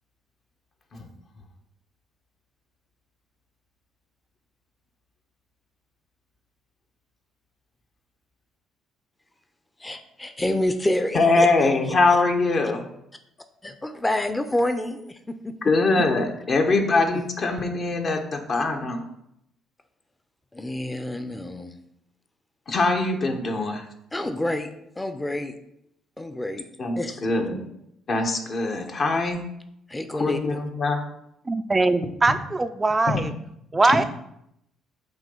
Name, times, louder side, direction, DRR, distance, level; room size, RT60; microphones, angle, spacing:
voice 1, 9.8-11.7 13.6-16.3 20.5-21.8 24.1-24.7 25.0-25.6 26.2-26.7 27.0-27.3 29.9-30.6, left 1 dB, 15° left, 9 dB, 0.7 m, -28 dB
voice 2, 11.1-12.9 15.6-19.0 22.7-23.8 26.8-27.6 28.1-29.4 30.2-31.0 33.8-34.0, left 3 dB, 50° left, 4 dB, 1.1 m, -22 dB
voice 3, 31.5-33.3 33.7-34.0, right 3 dB, 25° right, 10 dB, 0.4 m, -21 dB
7.1 x 3.0 x 5.5 m, 0.78 s
hypercardioid pair, 50°, 0 cm